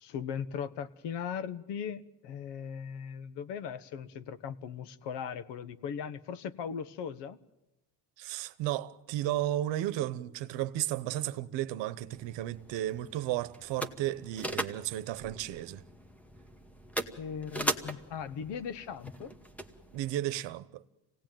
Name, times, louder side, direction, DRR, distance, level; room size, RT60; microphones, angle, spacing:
voice 1, 0.0-7.4 17.0-19.3, left 7 dB, 75° left, 1.2 m, -38 dB
voice 2, 8.2-15.8 19.9-20.8, right 13 dB, 85° right, 1.0 m, -34 dB
sound 1, 12.1-20.1, equal, 5° left, 1.1 m, -40 dB
26.0 x 18.0 x 9.1 m
cardioid pair, 135°, 43 cm